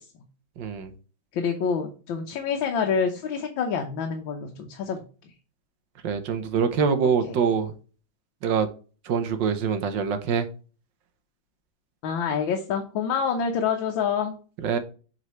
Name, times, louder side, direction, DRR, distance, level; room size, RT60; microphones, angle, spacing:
voice 1, 0.6-0.9 6.0-7.7 8.4-8.7 9.1-10.5 14.6-14.8, right 6 dB, 70° right, 1.5 m, -24 dB
voice 2, 1.3-5.0 7.3-7.4 12.0-14.4, left 6 dB, 80° left, 1.7 m, -27 dB
7.6 x 4.6 x 3.1 m
omnidirectional pair, 2.1 m